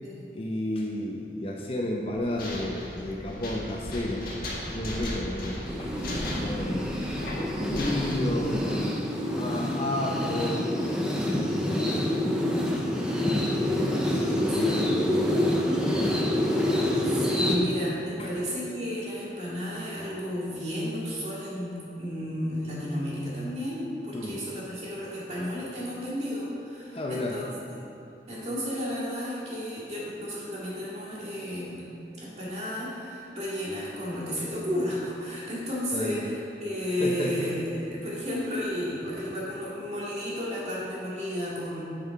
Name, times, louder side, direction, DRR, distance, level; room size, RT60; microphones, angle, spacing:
voice 1, 0.3-4.2 4.7-7.0 7.3-10.7 11.6-12.1 14.1-15.7 16.0-16.1 18.2-18.3 24.1-24.4 26.9-27.4 35.9-36.3 37.0-37.3, left 1 dB, 35° left, -1 dB, 0.7 m, -32 dB
sound 1, 2.0-8.2, left 1 dB, 55° left, 1.6 m, -36 dB
sound 2, 5.7-17.6, left 1 dB, 5° right, 0.7 m, -27 dB
voice 2, 6.6-7.0 14.5-14.8 17.0-27.9 28.3-31.9 32.2-41.8, equal, 40° right, -7 dB, 2.3 m, -33 dB
10.0 x 5.6 x 4.7 m, 2.6 s
head